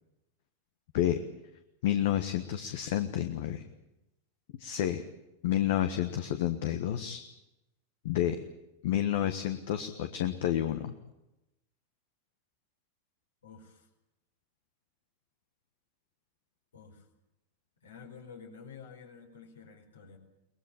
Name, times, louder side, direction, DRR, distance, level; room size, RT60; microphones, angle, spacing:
voice 1, 1.8-3.6 4.6-5.0 5.4-7.2 8.0-8.4 8.8-10.9, left 11 dB, 55° left, 8 dB, 1.4 m, -30 dB
voice 2, 13.4-13.9 16.7-17.0 17.8-20.2, left 6 dB, 70° left, 2 dB, 4.6 m, -50 dB
23.0 x 19.5 x 8.5 m, 0.93 s
figure-of-eight pair, 90°, 0 cm